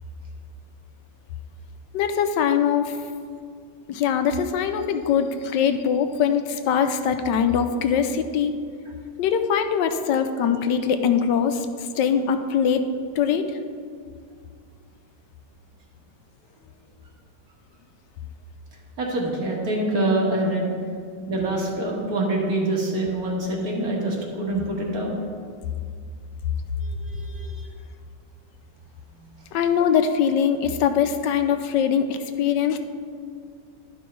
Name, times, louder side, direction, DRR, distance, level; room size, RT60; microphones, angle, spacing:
voice 1, 1.9-3.0 3.9-8.5 9.2-11.7 12.0-12.9 13.2-13.5 29.5-32.8, left 7 dB, 85° left, 8 dB, 1.3 m, -22 dB
voice 2, 19.0-20.7 21.3-25.2 26.8-27.6 29.2-29.3, right 1 dB, 60° right, -2 dB, 2.0 m, -25 dB
11.5 x 5.5 x 4.6 m, 2.2 s
omnidirectional pair, 1.9 m